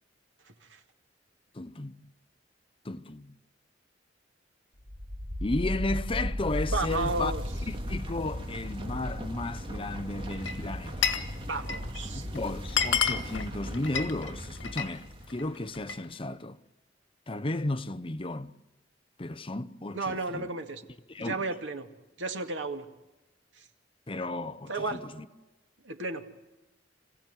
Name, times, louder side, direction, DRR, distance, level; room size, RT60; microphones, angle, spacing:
voice 1, 0.5-0.8 6.7-7.4 11.5-12.3 19.9-20.8 21.2-21.9 22.2-22.8 23.6-23.7 24.7-25.0 25.8-26.2, right 3 dB, 90° right, 2.3 m, -33 dB
voice 2, 1.5-2.1 2.8-3.3 5.4-7.3 7.7-11.1 12.1-16.6 17.3-18.5 19.2-20.5 21.1-21.4 24.1-25.3, left 2 dB, 30° left, 0.8 m, -34 dB
sound 1, 4.8-15.6, equal, 30° right, 2.6 m, -36 dB
Glass, 10.3-11.3 11.6-12.0 12.4-12.5 12.7-14.9 15.3-16.1, left 7 dB, 85° left, 1.8 m, -30 dB
27.0 x 16.5 x 9.4 m
head